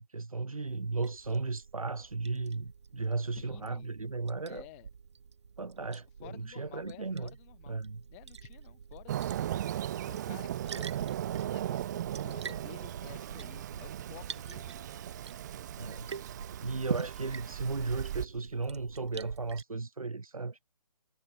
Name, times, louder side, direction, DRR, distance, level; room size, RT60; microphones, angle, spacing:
voice 1, 0.0-4.7 5.6-7.3 7.7-8.1 15.8-16.1 16.6-20.6, right 3 dB, 65° right, 3.0 m, -35 dB
Liquid, 0.7-19.6, right 6 dB, 45° right, 3.4 m, -45 dB
voice 2, 3.3-3.9 4.4-4.9 6.2-7.8 8.1-10.5 10.8-11.1 11.5-15.0, left 25 dB, 20° left, 7.8 m, -53 dB
Fireworks, 9.1-18.2, right 12 dB, 30° right, 2.7 m, -37 dB
figure-of-eight pair, 140°, 20 cm